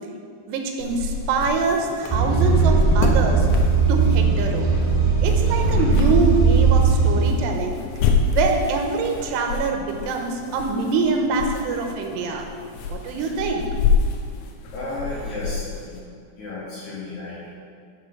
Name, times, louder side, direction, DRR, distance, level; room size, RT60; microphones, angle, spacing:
voice 1, 0.5-3.5 3.9-4.7 5.2-7.8 8.3-12.5 12.9-13.7, right 4 dB, 85° right, 3 dB, 2.9 m, -24 dB
sound 1, 0.8-16.0, left 5 dB, 80° left, 2.2 m, -28 dB
sound 2, 2.1-7.3, right 4 dB, 40° right, 0.4 m, -18 dB
voice 2, 14.7-16.0 16.4-17.5, left 2 dB, 60° left, -8 dB, 2.2 m, -33 dB
6.6 x 6.4 x 5.8 m, 2.3 s
omnidirectional pair, 4.9 m